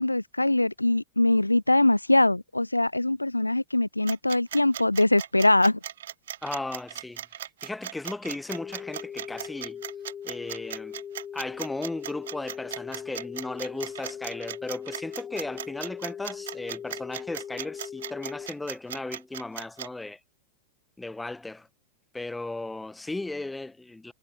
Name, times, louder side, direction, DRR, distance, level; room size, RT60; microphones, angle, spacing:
voice 1, 0.0-5.8, left 2 dB, 85° left, 0.5 m, -22 dB
sound 1, 4.1-19.9, right 11 dB, 60° right, 0.5 m, -37 dB
voice 2, 6.4-7.2 7.6-9.8 10.2-10.9 11.3-20.2 21.0-21.7 22.1-24.1, left 2 dB, 5° left, 0.9 m, -36 dB
sound 2, 8.5-18.5, left 8 dB, 25° left, 1.9 m, -40 dB
figure-of-eight pair, 90°, 0 cm